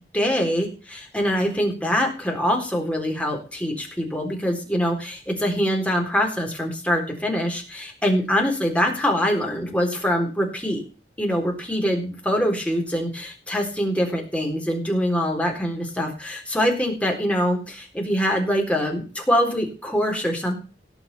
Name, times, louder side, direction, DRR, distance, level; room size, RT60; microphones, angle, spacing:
voice 1, 0.1-10.8 11.2-20.5, equal, 5° left, 1 dB, 3.9 m, -24 dB
17.5 x 6.1 x 6.8 m, 0.36 s
head